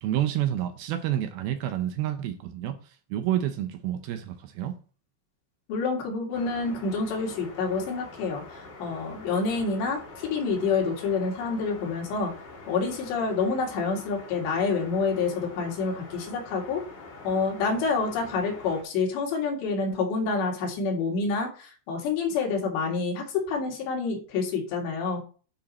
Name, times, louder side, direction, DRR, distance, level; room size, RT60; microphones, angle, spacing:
voice 1, 0.0-4.7, right 11 dB, 80° right, 2.3 m, -29 dB
voice 2, 5.7-12.3 12.7-16.8 17.2-25.2, left 4 dB, 90° left, 4.2 m, -28 dB
sound 1, 6.3-18.8, left 3 dB, 60° left, 1.1 m, -45 dB
10.0 x 5.3 x 4.1 m
omnidirectional pair, 4.9 m